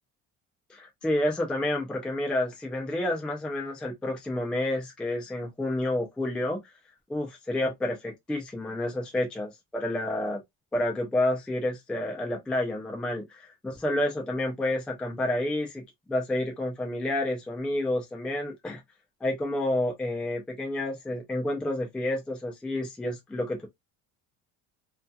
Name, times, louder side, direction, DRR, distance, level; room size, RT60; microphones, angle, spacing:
voice 1, 0.7-6.6 7.1-10.4 10.7-15.8 16.1-18.8 19.2-23.7, left 1 dB, 5° left, 0.3 m, -29 dB
2.7 x 2.3 x 2.2 m
cardioid pair, 175°, 31 cm